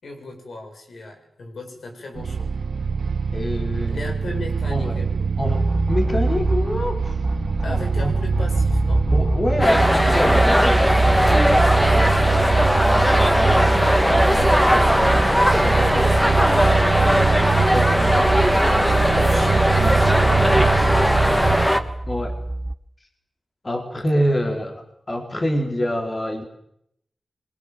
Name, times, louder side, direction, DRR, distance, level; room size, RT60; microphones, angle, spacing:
voice 1, 0.0-2.7 3.9-5.3 7.6-9.0 11.8-13.1 13.7-14.3 14.6-15.3 16.4-17.1 18.9-22.1, left 2 dB, 75° left, 3 dB, 7.4 m, -37 dB
sound 1, 2.2-21.7, right 5 dB, 75° right, 1.5 m, -24 dB
voice 2, 3.3-4.1 4.7-5.0 5.4-7.1 7.7-8.1 9.1-11.2 11.5-11.6 13.5-13.7 14.7-14.9 15.6-15.8 17.6-18.2 20.5-20.7 22.1-22.3 23.6-26.4, equal, 35° left, 3 dB, 4.5 m, -26 dB
sound 2, 5.4-22.7, right 1 dB, 20° right, 1.0 m, -25 dB
sound 3, 9.6-21.8, equal, 10° left, 2.9 m, -19 dB
27.0 x 22.5 x 7.7 m, 0.75 s
cardioid pair, 45°, 0 cm